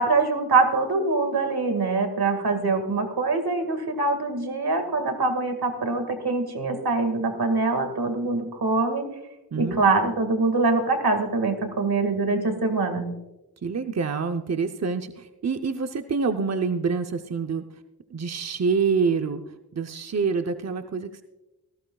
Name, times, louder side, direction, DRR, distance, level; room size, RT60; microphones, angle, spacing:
voice 1, 0.0-9.1 9.6-13.1, right 3 dB, 80° right, 6 dB, 2.0 m, -24 dB
voice 2, 9.5-9.9 13.6-17.6 18.1-19.4 19.7-21.2, right 5 dB, 45° right, 7 dB, 0.7 m, -26 dB
18.5 x 15.0 x 2.3 m, 1.0 s
wide cardioid pair, 60°, 37 cm